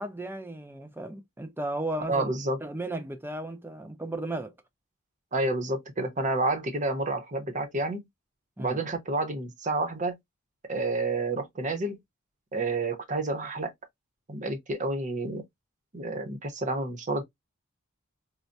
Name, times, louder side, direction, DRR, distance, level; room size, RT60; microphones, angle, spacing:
voice 1, 0.0-2.3 2.6-4.5 8.6-8.8, right 1 dB, 10° right, 0.5 m, -35 dB
voice 2, 2.1-2.6 5.3-8.1 8.6-10.2 10.7-12.0 12.5-13.7 14.3-15.4 15.9-17.2, right 2 dB, 35° right, 0.8 m, -29 dB
4.4 x 2.2 x 2.5 m
head